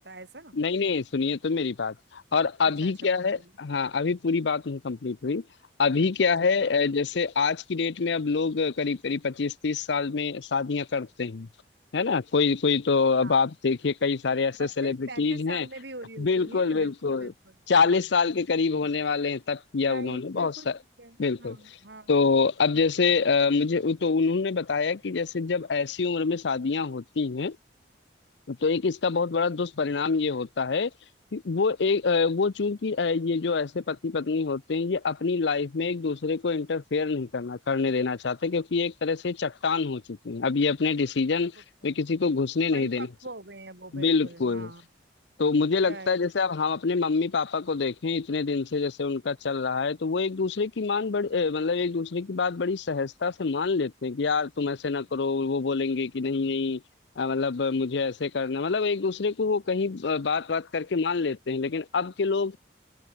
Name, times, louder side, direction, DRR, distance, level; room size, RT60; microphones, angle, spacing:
voice 1, 0.0-0.5 2.8-3.5 6.0-6.7 13.2-13.4 14.6-17.5 17.8-18.0 19.8-20.7 21.0-22.1 41.8-42.0 42.7-44.9 45.8-46.3, right 2 dB, 65° right, 4.5 m, -44 dB
voice 2, 0.5-5.4 5.8-11.5 11.9-15.7 16.2-17.3 17.7-20.8 21.2-21.8 22.1-27.6 28.5-30.9 31.3-41.5 41.8-43.1 43.9-44.7 45.4-56.8 57.2-62.6, left 4 dB, 70° left, 0.6 m, -26 dB
open air
head